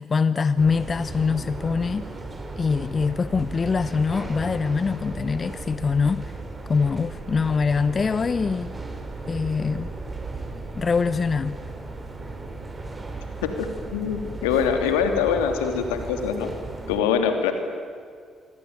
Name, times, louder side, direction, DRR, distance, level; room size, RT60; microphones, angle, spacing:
voice 1, 0.0-2.1 2.6-6.3 6.7-8.7 9.3-9.9 10.7-11.6, left 5 dB, 40° left, 14 dB, 0.9 m, -23 dB
sound 1, 0.6-17.0, right 3 dB, 30° right, 5.2 m, -36 dB
voice 2, 13.9-16.5 16.9-17.5, left 7 dB, 85° left, 6 dB, 3.0 m, -23 dB
26.5 x 23.0 x 9.6 m, 2.1 s
hypercardioid pair, 50°, 0 cm